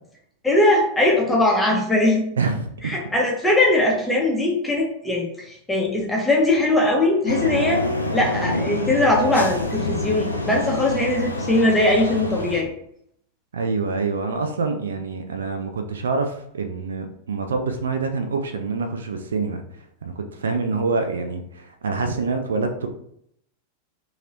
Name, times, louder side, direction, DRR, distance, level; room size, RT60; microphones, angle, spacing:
voice 1, 0.4-2.2 2.8-7.8 8.1-12.7, left 1 dB, 10° left, -2 dB, 0.9 m, -20 dB
voice 2, 2.4-3.0 13.5-19.6 20.0-22.9, right 4 dB, 65° right, 5 dB, 0.4 m, -26 dB
sound 1, 7.3-12.6, left 1 dB, 85° left, 0.4 m, -26 dB
2.9 x 2.8 x 2.6 m, 0.71 s
figure-of-eight pair, 90°, 0 cm